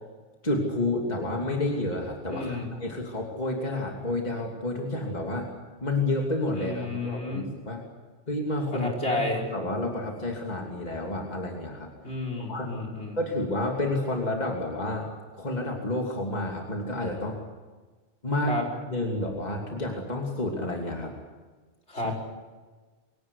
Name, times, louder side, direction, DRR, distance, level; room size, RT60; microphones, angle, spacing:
voice 1, 0.4-5.5 5.8-7.8 8.3-11.9 12.5-12.7 13.2-15.1 15.3-17.4 18.2-18.6 18.9-21.1 21.9-22.1, left 2 dB, 40° left, 0 dB, 3.0 m, -30 dB
voice 2, 2.3-2.7 6.6-7.5 8.7-9.4 12.0-13.2 18.5-18.6 21.9-22.1, left 2 dB, 70° left, 1 dB, 5.4 m, -31 dB
23.5 x 17.5 x 10.0 m, 1.3 s
omnidirectional pair, 1.1 m